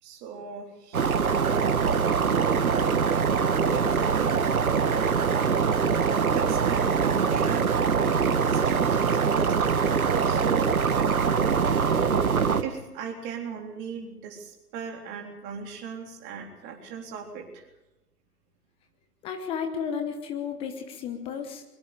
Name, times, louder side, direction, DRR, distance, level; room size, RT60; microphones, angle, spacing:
voice 1, 0.0-2.9 3.6-12.2 12.6-17.6, right 6 dB, 20° right, 2 dB, 3.7 m, -38 dB
sound 1, 0.9-12.6, right 6 dB, 65° right, 1.7 m, -23 dB
voice 2, 19.2-21.6, left 7 dB, 10° left, 5 dB, 1.1 m, -33 dB
23.0 x 23.0 x 5.0 m, 0.98 s
figure-of-eight pair, 135°, 47 cm